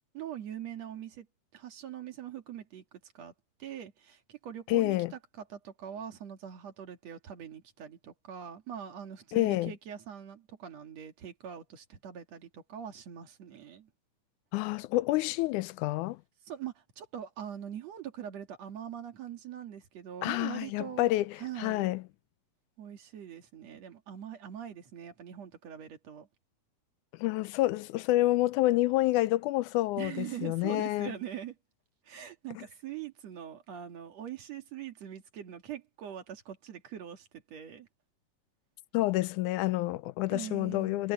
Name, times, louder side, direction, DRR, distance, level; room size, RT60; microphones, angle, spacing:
voice 1, 0.1-1.3 1.5-3.3 3.6-13.9 16.5-21.1 21.4-21.9 22.8-26.3 30.0-31.6 32.1-37.9 40.3-41.0, right 9 dB, 60° right, 3.0 m, -43 dB
voice 2, 4.7-5.1 9.3-9.7 14.5-16.2 20.2-22.0 27.2-31.1 32.6-32.7 38.9-41.1, left 17 dB, 90° left, 2.1 m, -28 dB
omnidirectional pair, 3.4 m